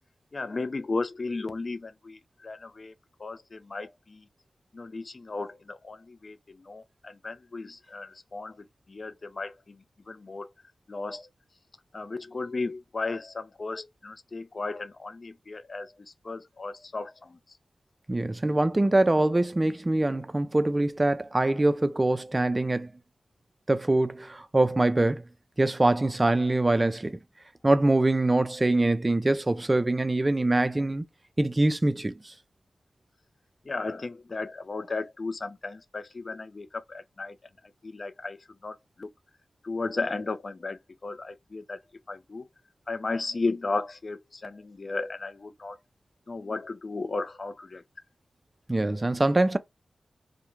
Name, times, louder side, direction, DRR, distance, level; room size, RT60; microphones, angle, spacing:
voice 1, 0.3-2.9 3.2-4.3 4.7-10.5 10.9-11.3 11.9-17.4 33.6-37.4 37.8-39.1 39.6-41.8 42.1-42.5 42.9-45.8 46.3-47.8, left 3 dB, 55° left, 0.4 m, -35 dB
voice 2, 18.1-22.9 23.7-25.2 25.6-27.2 27.6-31.0 31.4-32.3 48.7-49.6, right 2 dB, 30° right, 0.4 m, -24 dB
2.3 x 2.1 x 2.9 m
cardioid pair, 40°, 0 cm